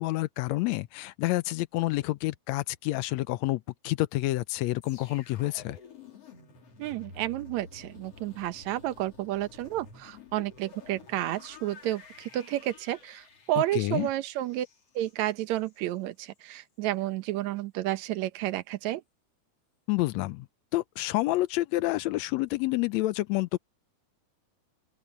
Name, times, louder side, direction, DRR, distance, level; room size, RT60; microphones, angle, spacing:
voice 1, 0.0-5.8 13.7-14.1 19.9-20.5 20.7-23.6, left 18 dB, 75° left, 1.8 m, -28 dB
sound 1, 4.8-15.9 16.2-16.5, left 4 dB, 55° left, 4.4 m, -51 dB
voice 2, 6.8-14.7 15.0-19.0, right 14 dB, 75° right, 2.2 m, -31 dB
open air
omnidirectional pair, 3.4 m